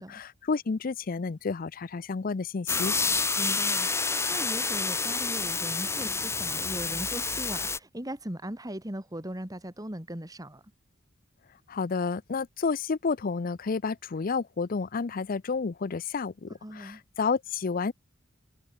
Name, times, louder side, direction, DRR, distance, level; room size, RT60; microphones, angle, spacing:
voice 1, 0.0-2.9 11.7-17.9, left 4 dB, 45° left, 0.5 m, -30 dB
sound 1, 2.7-7.8, left 4 dB, 15° left, 1.2 m, -29 dB
voice 2, 3.1-10.6 16.6-17.0, right 1 dB, 20° right, 2.9 m, -39 dB
head